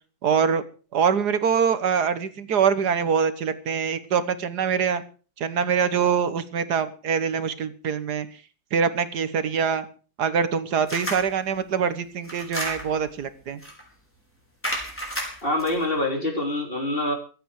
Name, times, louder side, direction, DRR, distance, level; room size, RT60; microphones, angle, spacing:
voice 1, 0.2-0.6 0.9-5.0 5.4-8.3 8.7-9.9 10.2-13.6, right 6 dB, 80° right, 12 dB, 1.8 m, -24 dB
sound 1, 10.9-11.3 12.2-13.1 13.6-13.8 14.6-15.7, equal, 5° left, 4.7 m, -31 dB
voice 2, 15.4-17.1, left 1 dB, 35° left, 4 dB, 3.3 m, -25 dB
23.5 x 8.6 x 4.8 m, 0.37 s
omnidirectional pair, 1.7 m